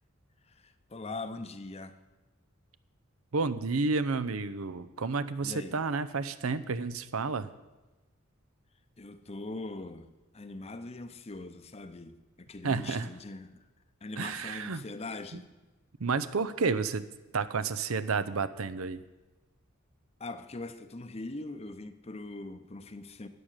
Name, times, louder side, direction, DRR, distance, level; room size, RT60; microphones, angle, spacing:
voice 1, 0.5-2.0 5.4-5.8 9.0-13.6 14.0-15.5 20.2-23.3, left 2 dB, 30° left, 0.7 m, -42 dB
voice 2, 3.3-7.5 12.6-13.1 14.2-14.8 15.3-15.4 16.0-17.0 17.3-19.0, right 4 dB, 90° right, 0.7 m, -31 dB
13.5 x 8.9 x 6.6 m
head